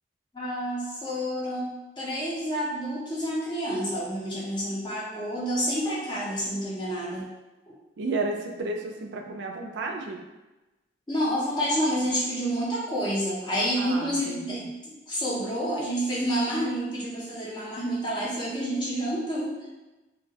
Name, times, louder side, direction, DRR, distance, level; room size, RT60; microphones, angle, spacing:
voice 1, 0.3-7.3 11.1-19.6, equal, 25° left, -7 dB, 0.6 m, -29 dB
voice 2, 8.0-10.2 13.7-14.7, right 3 dB, 80° right, 2 dB, 0.3 m, -32 dB
2.3 x 2.0 x 2.7 m, 1.1 s
head